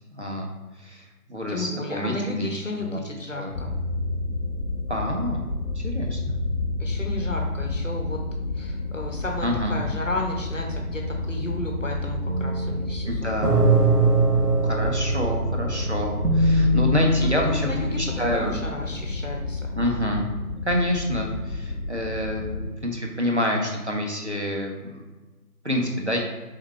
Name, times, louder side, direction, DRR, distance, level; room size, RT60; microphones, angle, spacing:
voice 1, 0.1-0.5 0.8-2.5 2.8-3.0 3.3-3.5 4.9-5.5 5.8-6.4 9.4-9.8 13.1-13.6 14.6-17.7 18.0-18.6 19.8-20.3 20.6-25.0 25.6-26.2, equal, 50° right, 0 dB, 0.7 m, -27 dB
voice 2, 1.5-3.7 6.8-8.2 8.5-13.4 17.5-19.7, left 1 dB, 55° left, 1 dB, 0.9 m, -33 dB
sound 1, 3.5-22.7, left 2 dB, 90° left, 0.7 m, -30 dB
sound 2, 12.3-18.1, right 2 dB, 85° right, 0.9 m, -22 dB
4.4 x 3.7 x 3.2 m, 1.2 s
figure-of-eight pair, 175°, 46 cm